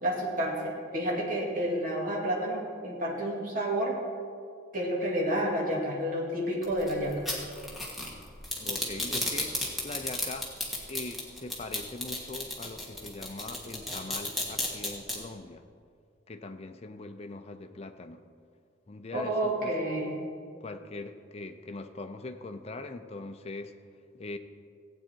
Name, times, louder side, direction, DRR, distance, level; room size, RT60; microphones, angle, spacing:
voice 1, 0.0-4.0 4.7-7.2 19.1-20.1, right 1 dB, 45° right, -3 dB, 2.4 m, -30 dB
sound 1, 6.6-15.1, left 2 dB, ahead, 1.7 m, -33 dB
voice 2, 8.6-9.6 9.8-10.5 10.9-15.6 16.3-18.2 18.9-19.7 20.6-23.8 24.1-24.4, left 2 dB, 30° left, 7 dB, 0.6 m, -41 dB
16.0 x 8.6 x 4.5 m, 2.2 s
head